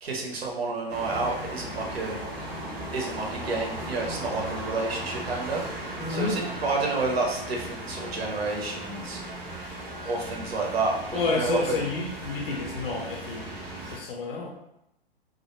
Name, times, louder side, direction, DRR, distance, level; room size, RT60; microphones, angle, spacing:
voice 1, 0.0-2.2 2.9-9.2 10.0-11.8, right 3 dB, 75° right, -1 dB, 0.7 m, -30 dB
sound 1, 0.9-14.0, right 1 dB, 25° right, 0.5 m, -37 dB
voice 2, 6.0-6.4 11.1-13.6 13.9-14.5, left 3 dB, 60° left, -1 dB, 0.6 m, -30 dB
2.1 x 2.1 x 2.9 m, 0.83 s
figure-of-eight pair, 115°, 31 cm